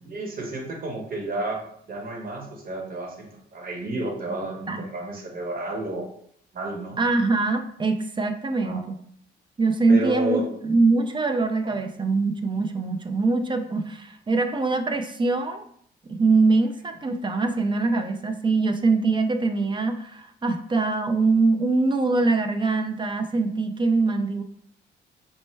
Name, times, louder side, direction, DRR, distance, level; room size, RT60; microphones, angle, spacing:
voice 1, 0.0-1.6 1.9-6.1 6.5-7.0 8.6-8.8 9.9-10.5 11.6-11.8, right 2 dB, 45° right, 0 dB, 1.1 m, -31 dB
voice 2, 7.0-9.0 9.6-15.6 16.1-24.4, right 3 dB, 25° right, 6 dB, 0.4 m, -23 dB
4.3 x 2.1 x 3.2 m, 0.66 s
cardioid pair, 90°, 20 cm